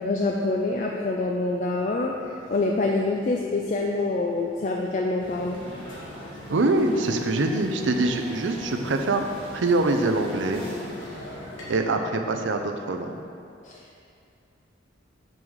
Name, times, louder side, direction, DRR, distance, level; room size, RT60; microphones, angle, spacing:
voice 1, 0.0-2.1 2.5-5.6 13.6-14.0, left 2 dB, 40° left, 0 dB, 0.4 m, -26 dB
sound 1, 1.5-13.3, equal, 30° right, 1.3 m, -45 dB
sound 2, 5.2-11.8, left 1 dB, 85° left, 1.3 m, -42 dB
voice 2, 6.5-9.3 9.5-10.6 11.7-13.2, right 2 dB, 75° right, 5 dB, 0.6 m, -24 dB
5.4 x 4.7 x 6.3 m, 2.4 s
head